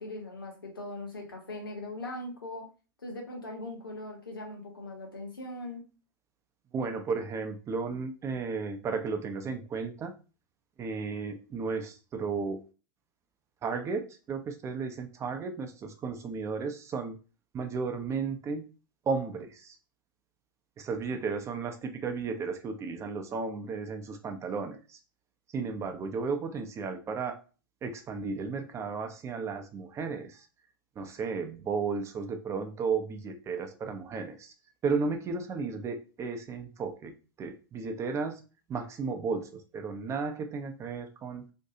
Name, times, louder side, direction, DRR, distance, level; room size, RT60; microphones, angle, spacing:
voice 1, 0.0-2.7 3.0-5.8, left 2 dB, 85° left, 1 dB, 1.0 m, -40 dB
voice 2, 6.7-10.2 10.8-12.6 13.6-17.2 17.5-18.7 19.1-19.8 20.8-25.0 25.5-27.4 27.8-30.5 31.0-34.5 34.8-37.1 37.4-38.4 38.7-41.4, right 4 dB, 25° right, 6 dB, 0.5 m, -34 dB
2.6 x 2.3 x 2.7 m, 0.34 s
figure-of-eight pair, 90°, 12 cm